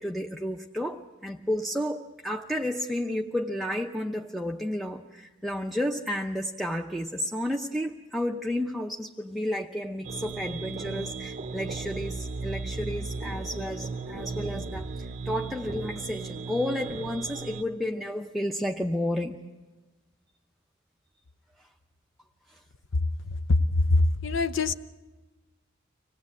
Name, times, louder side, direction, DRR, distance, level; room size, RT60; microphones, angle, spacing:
voice 1, 0.0-19.4 22.5-22.6, left 1 dB, ahead, 1 dB, 0.7 m, -32 dB
sound 1, 10.0-17.6, right 4 dB, 35° right, 0.7 m, -36 dB
voice 2, 23.2-24.7, left 2 dB, 65° left, 11 dB, 0.7 m, -23 dB
25.5 x 18.0 x 8.5 m, 1.2 s
head